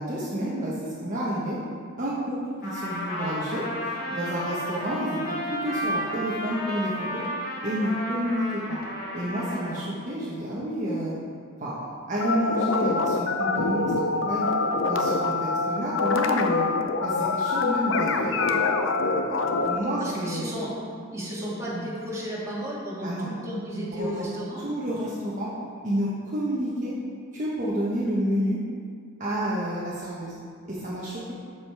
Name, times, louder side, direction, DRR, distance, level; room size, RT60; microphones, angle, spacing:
voice 1, 0.0-1.6 2.0-3.6 4.1-7.2 7.6-8.8 9.1-11.2 11.6-14.5 14.8-16.7 17.0-18.6 19.3-20.5 23.0-23.3 23.9-24.3 24.6-25.5 25.8-26.9 27.3-28.6 29.2-30.3 30.7-31.2, equal, 40° right, -7 dB, 1.3 m, -29 dB
Trumpet, 2.6-9.8, equal, 50° left, 2.0 m, -32 dB
sound 1, 12.2-19.8, left 3 dB, 75° left, 0.7 m, -25 dB
voice 2, 20.0-20.7 21.1-24.6, equal, 15° right, -8 dB, 2.4 m, -33 dB
13.0 x 5.1 x 4.9 m, 2.2 s
head